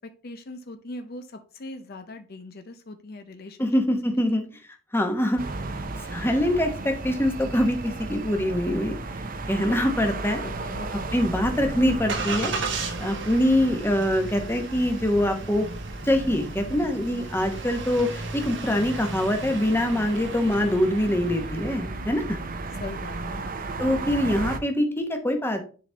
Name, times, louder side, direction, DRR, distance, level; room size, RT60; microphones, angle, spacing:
voice 1, 0.2-3.7 4.3-4.4 10.4-11.0 22.8-23.5, left 2 dB, 50° left, 8 dB, 0.6 m, -40 dB
voice 2, 3.6-4.4 4.9-5.4 6.1-8.9 9.5-10.4 11.1-12.5 13.0-15.7 16.0-22.4 23.8-25.6, left 1 dB, 10° left, 4 dB, 1.0 m, -24 dB
sound 1, 5.4-24.6, right 2 dB, 45° right, 0.7 m, -35 dB
Engine starting, 11.0-21.8, right 4 dB, 60° right, 1.3 m, -36 dB
10.0 x 4.1 x 3.4 m, 0.39 s
head